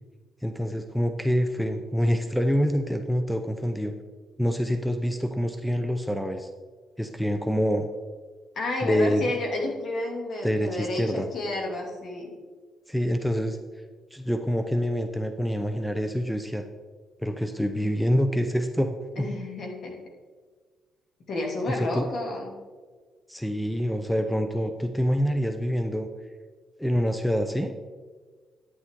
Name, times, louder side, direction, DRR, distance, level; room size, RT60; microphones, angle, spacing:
voice 1, 0.4-3.9 4.4-6.5 7.0-7.9 8.8-9.2 10.4-11.3 12.9-13.6 14.1-16.6 17.2-19.3 21.7-22.1 23.3-26.1 26.8-27.7, equal, ahead, 7 dB, 0.7 m, -26 dB
voice 2, 8.5-12.3 19.2-19.9 21.3-22.5, left 2 dB, 55° left, 0 dB, 2.6 m, -31 dB
9.7 x 9.6 x 3.8 m, 1.5 s
cardioid pair, 90°, 0 cm